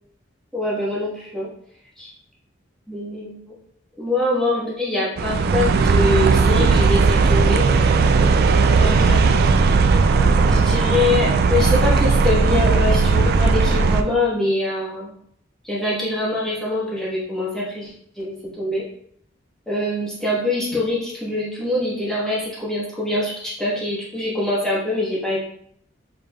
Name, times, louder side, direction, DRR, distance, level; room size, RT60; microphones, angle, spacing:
voice 1, 0.5-1.5 2.0-2.1 2.9-3.3 4.0-8.0 8.7-9.3 10.3-15.1 15.6-17.9 18.2-18.8 19.7-25.4, left 2 dB, 5° left, -8 dB, 1.2 m, -24 dB
sound 1, 5.2-14.0, right 4 dB, 55° right, 0.3 m, -17 dB
5.3 x 3.4 x 2.3 m, 0.67 s
head